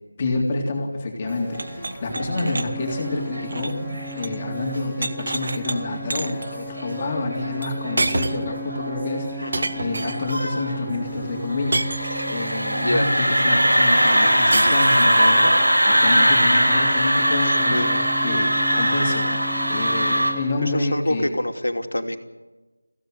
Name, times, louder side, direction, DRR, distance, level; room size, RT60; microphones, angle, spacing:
voice 1, 0.2-3.8 4.1-21.3, left 2 dB, 25° left, -1 dB, 3.5 m, -28 dB
sound 1, 1.2-20.9, equal, ahead, 1.0 m, -37 dB
sound 2, 1.4-20.3, right 1 dB, 90° right, 6.8 m, -22 dB
sound 3, 1.5-4.4 4.7-5.8 6.1-6.5 7.6-7.7 8.0-8.5 9.5-10.4 11.7-12.5 14.5-15.3, right 2 dB, 50° right, 1.6 m, -29 dB
voice 2, 12.7-13.1 17.4-18.1 20.0-20.1 20.6-22.2, left 1 dB, 85° left, 5 dB, 2.9 m, -26 dB
23.5 x 16.5 x 7.9 m, 1.2 s
figure-of-eight pair, 170°, 0 cm